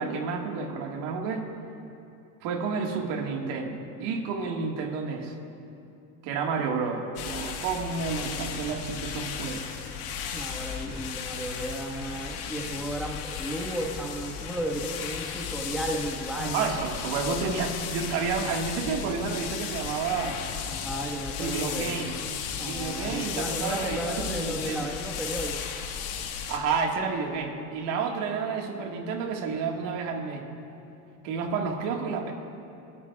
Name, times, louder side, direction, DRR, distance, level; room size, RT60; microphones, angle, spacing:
voice 1, 0.0-1.5 2.4-5.3 6.2-9.6 16.4-20.4 21.4-22.1 22.6-24.9 26.5-30.4 31.2-32.3, right 5 dB, 65° right, 2 dB, 1.9 m, -30 dB
sound 1, 7.2-26.6, left 7 dB, 65° left, 1.8 m, -35 dB
voice 2, 10.3-16.7 20.7-22.0 22.6-25.5, right 1 dB, ahead, -1 dB, 1.5 m, -34 dB
29.0 x 14.0 x 2.4 m, 2.7 s
supercardioid pair, 110°, 44 cm